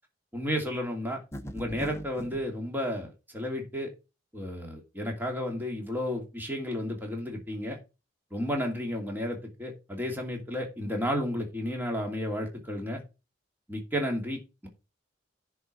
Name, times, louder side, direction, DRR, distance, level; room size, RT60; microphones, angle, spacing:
voice 1, 0.3-1.2 1.5-3.9 4.3-7.8 8.3-13.0 13.7-14.7, equal, 10° right, 2.6 m, -32 dB
sound 1, 1.3-2.4, equal, 15° left, 0.9 m, -39 dB
10.0 x 4.8 x 4.8 m
head